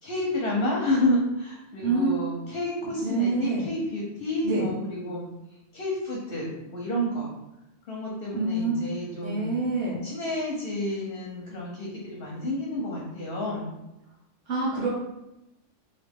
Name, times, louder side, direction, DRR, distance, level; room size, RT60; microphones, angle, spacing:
voice 1, 0.0-5.3 5.7-7.3 7.9-9.6 10.0-13.7, left 1 dB, 55° left, -3 dB, 0.8 m, -30 dB
voice 2, 1.7-2.1 3.0-3.7 4.4-4.7 8.3-8.9 9.2-10.0 14.5-14.9, right 2 dB, 85° right, -7 dB, 1.2 m, -27 dB
3.0 x 2.7 x 3.4 m, 0.93 s
omnidirectional pair, 1.2 m